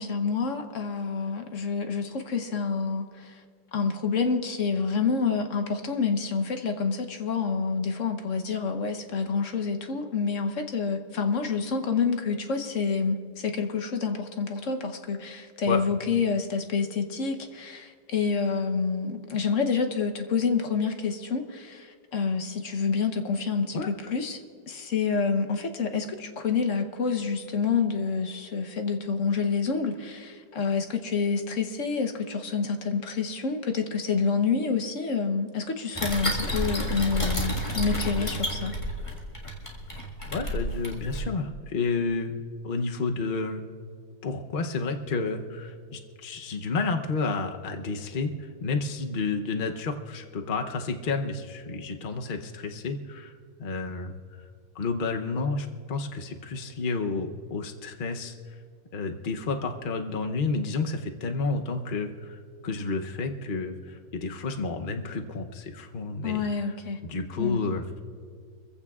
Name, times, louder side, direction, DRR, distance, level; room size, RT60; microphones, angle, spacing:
voice 1, 0.0-3.3 3.7-24.4 24.7-38.7 66.2-67.0 67.4-67.6, left 5 dB, 50° left, 6 dB, 1.0 m, -28 dB
sound 1, 36.0-41.2, equal, 15° left, 1.6 m, -30 dB
voice 2, 40.3-43.6 44.2-53.3 53.6-54.1 54.7-58.3 58.9-62.4 62.6-66.7 67.0-68.0, left 4 dB, 75° left, 4 dB, 0.4 m, -30 dB
26.0 x 15.5 x 2.4 m, 2.1 s
omnidirectional pair, 2.1 m